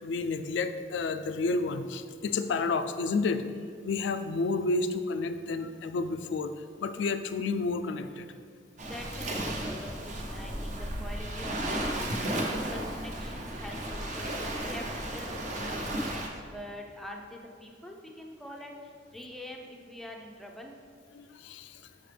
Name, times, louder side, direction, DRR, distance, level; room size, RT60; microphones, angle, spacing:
voice 1, 0.0-3.5 3.8-8.3 21.1-21.8, left 3 dB, 70° left, 9 dB, 0.3 m, -31 dB
voice 2, 8.8-12.4 12.7-14.3 14.6-20.8, left 1 dB, ahead, 0 dB, 0.5 m, -45 dB
Waves surf, 8.8-16.3, right 1 dB, 40° right, 0.7 m, -34 dB
6.2 x 5.7 x 3.3 m, 2.1 s
head